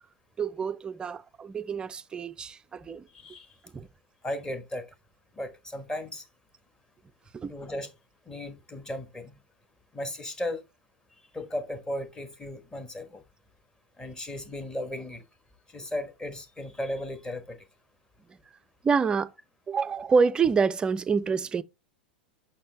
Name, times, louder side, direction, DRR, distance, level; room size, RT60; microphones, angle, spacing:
voice 1, 0.4-3.1 3.7-3.9 7.3-7.5 18.8-19.3 19.7-21.6, right 5 dB, 15° right, 0.4 m, -27 dB
voice 2, 3.1-3.5 4.2-4.9 5.3-6.2 7.5-7.9 8.3-9.4 9.9-10.6 11.3-13.2 14.0-15.2 15.7-17.6, left 1 dB, 15° left, 1.3 m, -36 dB
6.6 x 4.3 x 3.4 m
figure-of-eight pair, 95°, 5 cm